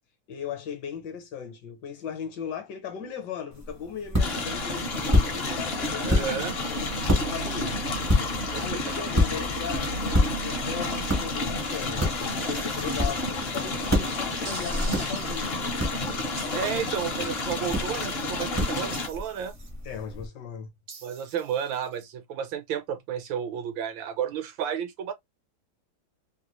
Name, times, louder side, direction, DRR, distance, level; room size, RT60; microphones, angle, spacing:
voice 1, 0.3-15.8 16.4-16.8 17.2-17.4 19.8-20.7, left 7 dB, 65° left, 1.3 m, -38 dB
sound 1, 3.5-20.3, left 1 dB, 25° right, 0.4 m, -30 dB
sound 2, 4.2-19.1, left 2 dB, 50° left, 0.8 m, -30 dB
voice 2, 6.0-6.6 8.5-8.7 16.5-19.5 21.0-25.1, right 8 dB, 80° right, 1.5 m, -32 dB
sound 3, 12.5-12.9 14.4-15.4 16.4-17.2 18.9-19.7 20.9-22.0, right 4 dB, 55° right, 0.8 m, -44 dB
3.4 x 2.4 x 2.9 m
omnidirectional pair, 2.1 m